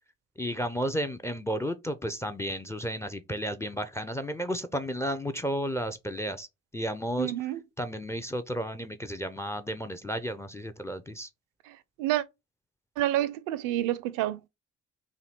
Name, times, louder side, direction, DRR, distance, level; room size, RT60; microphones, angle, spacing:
voice 1, 0.4-6.5 6.7-7.3 7.8-11.3, equal, 10° left, 0.3 m, -32 dB
voice 2, 7.2-7.6 11.7-12.2 13.0-14.4, right 14 dB, 60° right, 0.5 m, -29 dB
3.0 x 2.7 x 3.9 m
figure-of-eight pair, 45°, 36 cm